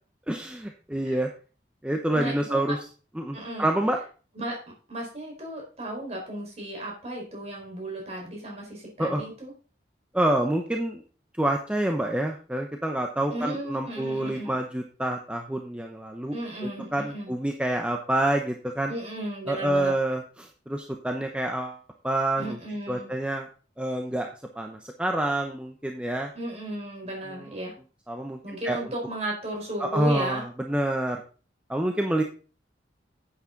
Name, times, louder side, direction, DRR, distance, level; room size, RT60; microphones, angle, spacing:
voice 1, 0.3-1.3 1.8-2.8 3.1-4.0 9.0-9.2 10.1-11.0 11.4-16.4 16.6-18.9 19.5-22.6 22.9-23.5 23.8-24.3 24.6-26.3 27.3-27.5 28.1-28.4 28.6-28.9 29.8-31.2 31.7-32.2, right 1 dB, 5° right, 3 dB, 0.8 m, -27 dB
voice 2, 2.1-2.7 3.3-3.7 4.3-4.6 4.9-9.5 13.3-14.6 16.3-17.3 18.9-19.9 22.4-23.1 26.3-27.7 28.4-30.4, right 1 dB, 35° right, -2 dB, 4.6 m, -34 dB
10.5 x 8.5 x 3.9 m, 0.36 s
head